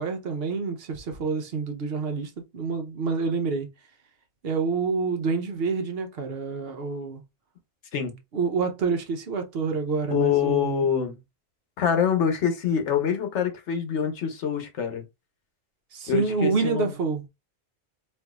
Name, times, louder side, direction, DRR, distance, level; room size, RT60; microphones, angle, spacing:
voice 1, 0.0-3.7 4.4-7.2 8.3-10.9 15.9-17.2, right 4 dB, 65° right, 0.9 m, -27 dB
voice 2, 10.1-11.1 11.8-15.0 16.1-16.9, left 8 dB, 85° left, 1.2 m, -25 dB
4.4 x 2.5 x 2.3 m
omnidirectional pair, 1.2 m